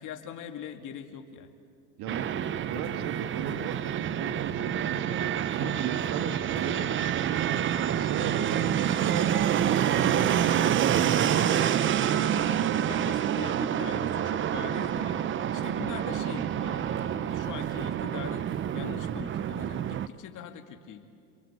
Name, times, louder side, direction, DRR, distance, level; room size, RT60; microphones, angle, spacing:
voice 1, 0.0-1.5 12.2-21.0, left 8 dB, 45° left, 4 dB, 2.5 m, -42 dB
voice 2, 2.0-7.6 7.8-12.0 12.5-12.9 16.4-16.5, right 7 dB, 55° right, 6 dB, 2.0 m, -37 dB
Fixed-wing aircraft airplane, 2.1-20.1, right 10 dB, 25° right, 0.7 m, -27 dB
27.5 x 22.5 x 8.3 m, 2.4 s
supercardioid pair, 115°, 44 cm